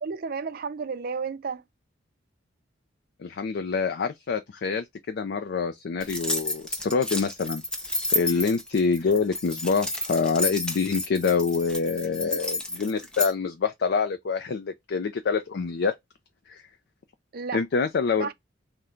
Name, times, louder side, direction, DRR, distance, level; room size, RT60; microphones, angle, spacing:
voice 1, 0.0-1.6 8.3-8.5 12.3-12.4 17.3-17.6 18.2-18.3, right 5 dB, 50° right, 0.5 m, -32 dB
voice 2, 3.2-15.9 16.5-16.6 17.5-18.3, left 5 dB, 60° left, 0.4 m, -26 dB
sound 1, 6.0-13.3, left 1 dB, 5° left, 0.6 m, -31 dB
3.7 x 2.2 x 4.3 m
head